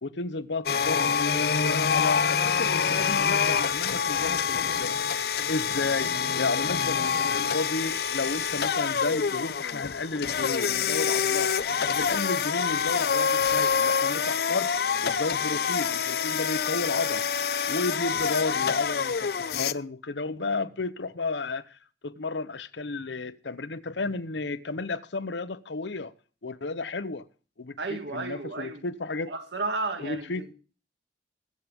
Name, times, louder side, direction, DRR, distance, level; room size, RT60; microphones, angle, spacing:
voice 1, 0.0-5.0 5.5-14.7 15.0-17.2 17.7-21.8 22.0-26.1 26.4-27.2 27.6-29.3 30.0-30.5, left 3 dB, 85° left, 0.9 m, -32 dB
sound 1, 0.7-19.7, left 6 dB, 60° left, 0.5 m, -26 dB
voice 2, 27.8-28.8 29.3-30.5, right 3 dB, 80° right, 1.9 m, -33 dB
22.0 x 7.5 x 3.6 m
head